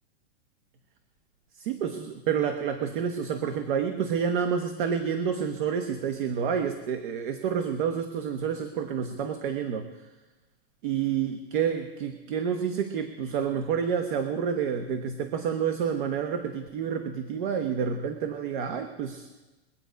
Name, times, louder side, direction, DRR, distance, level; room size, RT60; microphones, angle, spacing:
voice 1, 1.6-9.9 10.8-19.3, right 7 dB, 50° right, 7 dB, 1.1 m, -29 dB
22.5 x 8.2 x 5.2 m, 1.2 s
supercardioid pair, 160°, 32 cm